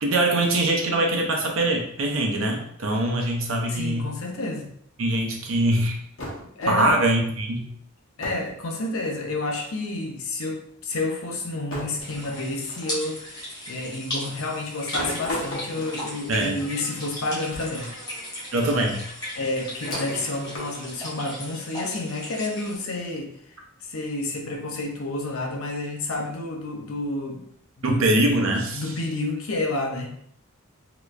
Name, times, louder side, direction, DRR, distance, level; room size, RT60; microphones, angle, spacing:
voice 1, 0.0-4.1 5.0-6.0 6.7-7.7 16.3-16.6 18.5-19.0 27.8-28.8, right 1 dB, 75° right, 1 dB, 0.7 m, -23 dB
voice 2, 3.7-4.7 6.6-7.0 8.2-17.9 18.7-18.8 19.4-23.3 23.9-27.4 27.8-28.1 28.7-30.1, left 2 dB, 85° left, 1 dB, 0.7 m, -30 dB
sound 1, 6.2-7.1 8.2-8.5 8.8-9.4 10.5-10.6 11.7-13.0 14.9-16.8 17.5-17.9 18.3-18.4 19.6-21.0, left 1 dB, 70° left, 1.0 m, -36 dB
sound 2, 12.0-22.8, left 1 dB, 20° left, 1.1 m, -36 dB
3.2 x 2.9 x 2.4 m, 0.69 s
head